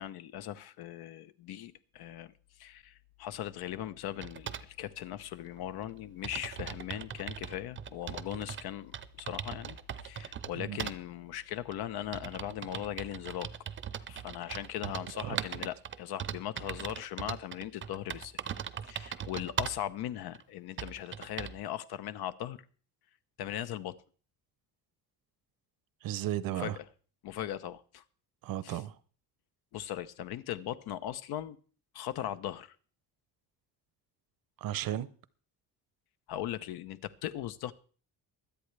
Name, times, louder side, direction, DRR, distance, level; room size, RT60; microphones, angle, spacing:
voice 1, 0.0-2.3 2.6-8.9 9.2-9.8 10.0-13.5 14.1-18.3 18.9-22.6 23.4-24.0 26.6-26.7 27.2-28.0 28.6-28.8 29.7-31.6 31.9-32.7 36.3-37.7, left 12 dB, 85° left, 0.9 m, -39 dB
sound 1, 4.2-4.7 5.6-5.7 5.9-6.0 6.2-8.7 8.9-10.5 10.8-11.0 11.7-19.9 20.3-20.4 20.8-21.6, right 8 dB, 35° right, 0.5 m, -39 dB
voice 2, 10.5-10.9 15.1-15.7 26.0-26.8 28.4-28.9 34.6-35.1, right 12 dB, 65° right, 0.8 m, -35 dB
23.5 x 8.5 x 3.3 m
cardioid pair, 165°, 37 cm